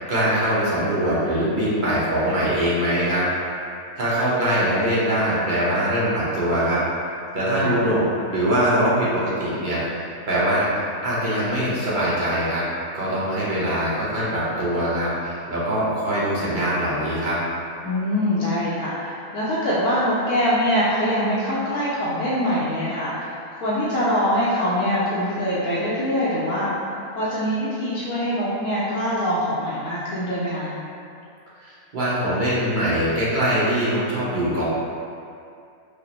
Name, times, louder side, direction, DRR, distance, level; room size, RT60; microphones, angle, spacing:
voice 1, 0.0-3.3 4.0-8.0 8.3-10.7 11.0-12.6 12.9-17.4 31.6-34.6, right 1 dB, 40° right, -9 dB, 0.8 m, -22 dB
voice 2, 17.8-26.7 27.1-30.7, equal, 80° left, -9 dB, 1.1 m, -23 dB
4.9 x 2.0 x 2.9 m, 2.4 s
omnidirectional pair, 1.6 m